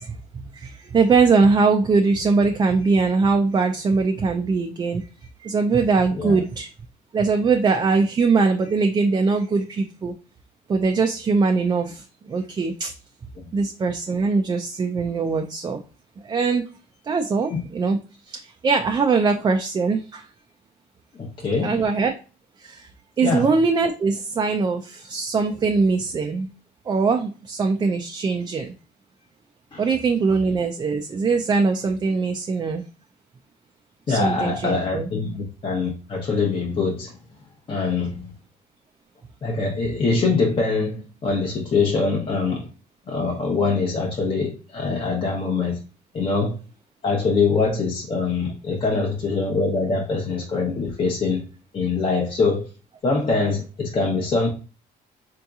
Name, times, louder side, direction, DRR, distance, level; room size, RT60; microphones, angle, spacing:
voice 1, 0.0-5.0 5.4-6.7 7.1-10.1 10.7-12.9 13.5-15.8 16.2-16.6 17.0-18.0 18.3-20.3 21.6-22.1 22.6-22.9 23.2-26.5 26.9-28.7 29.8-32.8 34.1-35.1, right 4 dB, 25° right, 4 dB, 0.3 m, -21 dB
voice 2, 21.2-21.8 23.2-23.5 29.7-29.8 34.1-37.1 37.7-38.3 39.4-42.7 43.1-45.8 46.1-46.6 47.0-51.4 51.7-52.7 53.0-54.5, left 4 dB, 30° left, -1 dB, 0.7 m, -23 dB
3.7 x 2.8 x 2.3 m, 0.35 s
cardioid pair, 110°, 17 cm